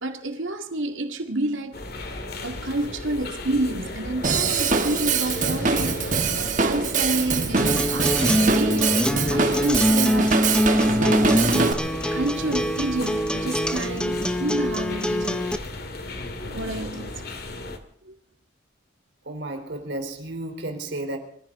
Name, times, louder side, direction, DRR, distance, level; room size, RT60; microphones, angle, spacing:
voice 1, 0.0-1.8 2.4-11.7 12.1-15.5 16.5-17.1 18.0-18.2, right 2 dB, 80° right, 2.0 m, -29 dB
sound 1, 1.7-17.8, left 2 dB, 50° left, 2.1 m, -35 dB
Drum kit / Drum, 4.2-11.7, right 4 dB, 40° right, 1.4 m, -23 dB
Acoustic guitar, 7.6-15.6, equal, 5° left, 0.7 m, -24 dB
voice 2, 19.2-21.2, right 1 dB, 60° right, 3.5 m, -32 dB
25.5 x 14.5 x 3.7 m
head